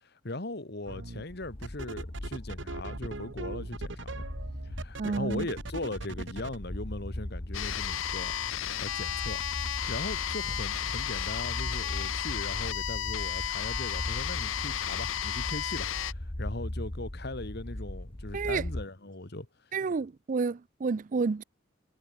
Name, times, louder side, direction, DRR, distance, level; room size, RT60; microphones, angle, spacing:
voice 1, 0.0-4.3 4.7-9.4 9.9-19.5, left 2 dB, 55° left, 2.0 m, -39 dB
sound 1, 0.9-1.2 1.6-6.6, right 2 dB, 70° right, 1.6 m, -39 dB
sound 2, 1.3-18.9, left 1 dB, 30° left, 1.2 m, -39 dB
voice 2, 5.0-5.5 18.3-18.6 19.7-21.4, right 4 dB, 40° right, 0.4 m, -30 dB
sound 3, 7.5-16.1, left 11 dB, 90° left, 0.6 m, -33 dB
head